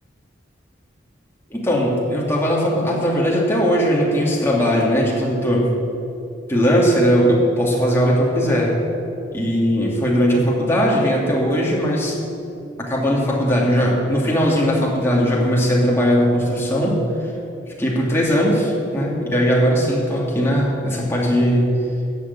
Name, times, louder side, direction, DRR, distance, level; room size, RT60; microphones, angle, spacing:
voice 1, 1.5-5.7 6.5-8.7 9.3-12.2 12.8-17.0 17.8-21.7, equal, 15° left, -4 dB, 2.8 m, -19 dB
14.5 x 7.2 x 9.7 m, 2.8 s
head